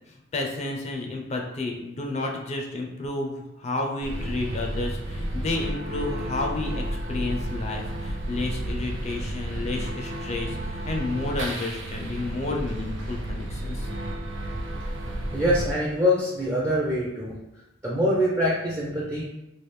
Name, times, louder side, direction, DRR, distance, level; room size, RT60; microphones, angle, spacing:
voice 1, 0.1-13.9, left 2 dB, 35° left, 1 dB, 0.4 m, -31 dB
sound 1, 4.0-15.7, right 1 dB, 85° right, 0.6 m, -32 dB
voice 2, 15.3-17.3 17.8-19.3, equal, 20° right, -6 dB, 0.5 m, -24 dB
3.2 x 2.4 x 3.2 m, 0.91 s
head